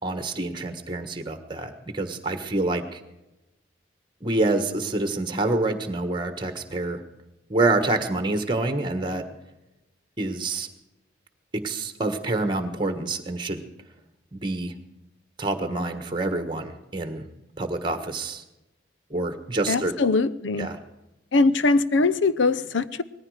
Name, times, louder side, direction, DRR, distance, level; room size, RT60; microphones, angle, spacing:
voice 1, 0.0-3.0 4.2-7.0 7.5-9.3 10.2-10.7 11.5-13.6 14.3-14.7 15.4-17.2 17.6-18.4 19.1-19.9 20.6-20.8, right 2 dB, 25° right, 8 dB, 1.4 m, -27 dB
voice 2, 19.7-20.7 21.3-23.0, left 3 dB, 75° left, 16 dB, 0.7 m, -21 dB
19.0 x 14.5 x 4.9 m, 0.95 s
head